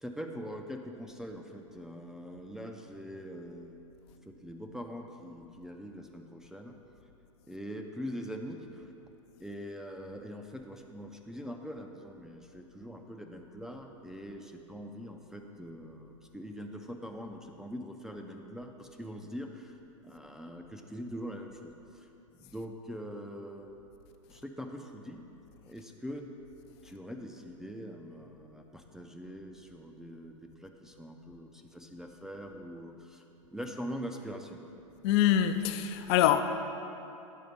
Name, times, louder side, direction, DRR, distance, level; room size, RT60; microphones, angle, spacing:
voice 1, 0.0-3.8 4.3-6.8 7.5-8.9 9.4-19.8 20.0-22.1 22.4-23.8 24.3-25.2 25.6-26.2 26.8-33.2 33.5-34.6, equal, 5° right, 0.4 m, -43 dB
voice 2, 35.0-36.4, left 11 dB, 55° left, 0.5 m, -24 dB
9.4 x 4.1 x 5.2 m
hypercardioid pair, 100°, 17 cm